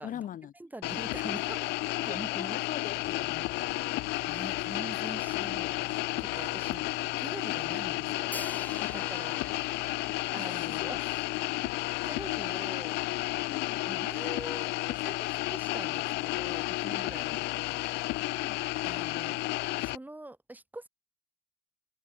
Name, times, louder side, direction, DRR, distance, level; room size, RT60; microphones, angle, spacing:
voice 1, 0.0-0.5 2.0-3.5 8.8-9.1 10.3-10.9 12.5-12.6 13.5-13.8 17.3-17.4 18.2-18.6, left 10 dB, 50° left, 1.2 m, -41 dB
voice 2, 0.6-2.6 4.3-5.9 6.2-6.9 7.2-8.4 8.9-9.4 10.3-11.0 11.8-13.0 13.9-17.8 18.1-18.2 18.8-19.4 19.8-20.9, right 2 dB, 10° right, 6.4 m, -44 dB
sound 1, 0.8-20.0, left 22 dB, 85° left, 0.4 m, -32 dB
sound 2, 2.8-10.2, right 13 dB, 70° right, 3.4 m, -55 dB
Hi-hat, 8.3-12.3, left 2 dB, 10° left, 5.9 m, -46 dB
cardioid pair, 110°, 17 cm